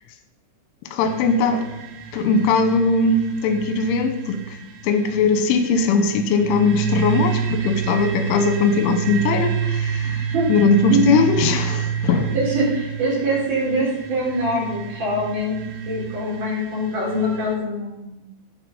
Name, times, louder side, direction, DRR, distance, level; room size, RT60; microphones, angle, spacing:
voice 1, 0.9-1.6 2.1-4.6 4.8-12.3, left 4 dB, 80° left, 7 dB, 3.5 m, -20 dB
sound 1, 1.0-17.6, right 8 dB, 90° right, 4.0 m, -29 dB
voice 2, 12.3-15.6 15.8-18.2, right 1 dB, 35° right, -4 dB, 4.9 m, -23 dB
11.0 x 8.9 x 5.4 m, 0.98 s
omnidirectional pair, 5.7 m